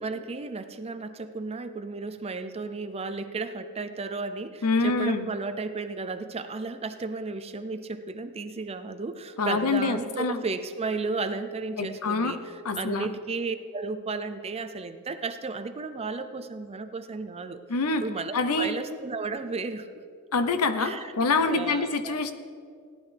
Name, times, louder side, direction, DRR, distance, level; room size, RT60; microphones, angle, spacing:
voice 1, 0.0-12.4 12.8-17.6 18.0-20.0 20.8-21.1 21.5-22.2, right 3 dB, 25° right, 10 dB, 0.5 m, -34 dB
voice 2, 4.6-5.3 9.4-10.4 11.8-12.4 12.6-13.1 17.7-18.1 18.3-18.7 20.3-22.3, left 3 dB, 85° left, 10 dB, 0.8 m, -26 dB
17.0 x 11.0 x 3.4 m, 2.3 s
head